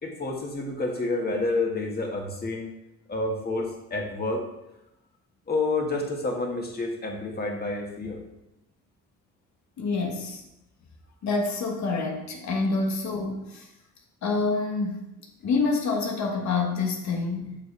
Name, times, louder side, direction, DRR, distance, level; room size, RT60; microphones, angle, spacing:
voice 1, 0.0-2.7 3.1-4.5 5.5-8.2, left 2 dB, 30° left, 0 dB, 1.8 m, -29 dB
voice 2, 9.8-10.4 11.2-13.7 14.2-15.0 15.4-17.6, left 3 dB, 65° left, 1 dB, 1.4 m, -27 dB
7.5 x 6.8 x 3.4 m, 0.88 s
cardioid pair, 90°, 30 cm